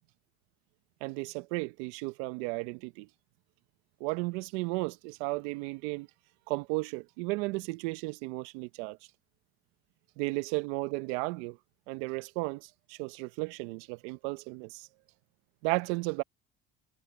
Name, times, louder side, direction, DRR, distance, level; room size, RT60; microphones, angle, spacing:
voice 1, 1.0-3.1 4.0-6.1 6.5-9.0 10.2-11.6 11.9-14.9 15.6-16.2, right 24 dB, 85° right, 0.8 m, -34 dB
supercardioid pair, 80°, 33 cm